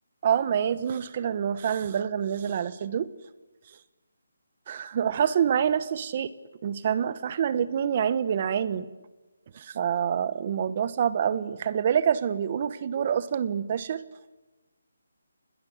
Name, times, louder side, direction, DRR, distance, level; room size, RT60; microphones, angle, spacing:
voice 1, 0.2-3.1 4.7-6.3 6.6-8.9 9.5-14.0, right 8 dB, 30° right, 17 dB, 1.0 m, -26 dB
29.5 x 21.5 x 8.0 m, 1.1 s
hypercardioid pair, 170°, 0 cm